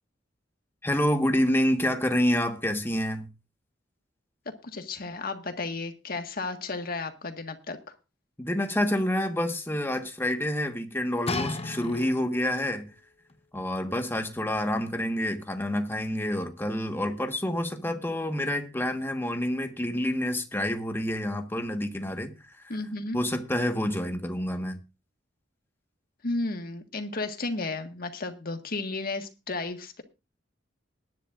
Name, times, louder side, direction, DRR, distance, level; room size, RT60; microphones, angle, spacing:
voice 1, 0.8-3.3 8.4-12.9 13.5-22.7 23.1-24.8, left 1 dB, 10° left, 1.4 m, -28 dB
voice 2, 4.4-8.0 22.7-23.2 26.2-30.0, left 3 dB, 50° left, 1.6 m, -33 dB
sound 1, 11.3-12.5 13.3-13.4, left 3 dB, 35° left, 1.0 m, -33 dB
20.0 x 10.5 x 2.5 m
head